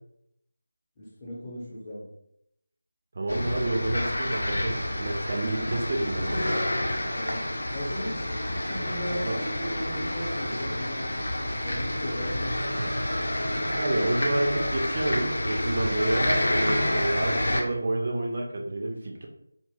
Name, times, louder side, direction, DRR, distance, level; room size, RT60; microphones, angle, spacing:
voice 1, 1.0-2.1 7.1-11.2 11.6-12.9, equal, 20° left, -6 dB, 0.7 m, -37 dB
voice 2, 3.2-6.4 9.3-9.4 12.8-13.0 13.7-19.3, right 1 dB, 40° right, 0 dB, 0.4 m, -29 dB
sound 1, 3.3-17.6, left 1 dB, 60° left, 0.6 m, -29 dB
2.6 x 2.0 x 3.5 m, 0.78 s
figure-of-eight pair, 165°, 0 cm